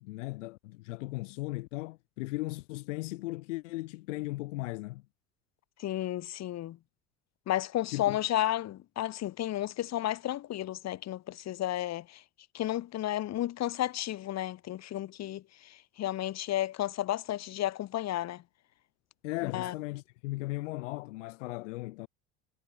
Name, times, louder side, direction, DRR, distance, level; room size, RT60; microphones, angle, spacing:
voice 1, 0.0-5.0 7.9-8.2 19.2-22.1, left 21 dB, 85° left, 0.7 m, -37 dB
voice 2, 5.8-6.8 7.5-12.2 12.5-18.4 19.4-19.7, left 13 dB, 45° left, 1.6 m, -32 dB
hypercardioid pair, 85°, 36 cm